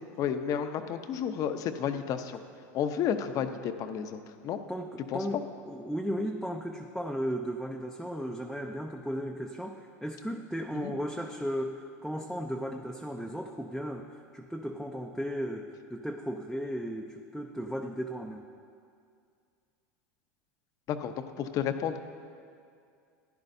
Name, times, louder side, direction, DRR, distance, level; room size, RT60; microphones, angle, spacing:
voice 1, 0.2-2.4 2.7-4.6 5.1-5.2 10.8-10.9 20.9-22.0, left 8 dB, 45° left, 9 dB, 0.7 m, -31 dB
voice 2, 4.7-18.5, equal, ahead, 0 dB, 0.5 m, -35 dB
15.0 x 10.5 x 2.7 m, 2.3 s
supercardioid pair, 110°, 9 cm